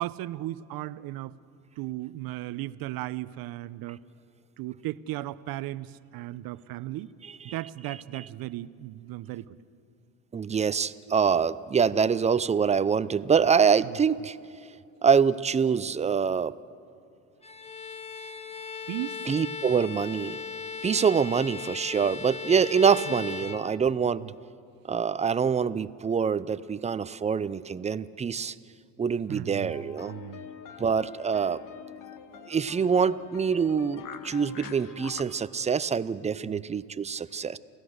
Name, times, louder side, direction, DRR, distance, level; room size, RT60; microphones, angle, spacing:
voice 1, 0.0-1.3 1.8-4.0 4.6-7.1 7.4-9.6 18.9-19.2 24.2-24.3 29.3-30.4 36.5-36.6, right 16 dB, 55° right, 16 dB, 0.8 m, -36 dB
voice 2, 10.3-14.4 15.0-16.6 19.3-20.4 20.8-24.2 24.9-28.6 29.0-30.1 30.8-31.6 32.5-37.6, right 6 dB, 15° right, 17 dB, 0.5 m, -25 dB
Bowed string instrument, 17.4-24.2, left 6 dB, 15° left, 1.2 m, -38 dB
sound 1, 29.7-35.2, left 8 dB, 50° left, 1.4 m, -44 dB
29.5 x 16.0 x 6.6 m, 2.5 s
supercardioid pair, 90°, 41 cm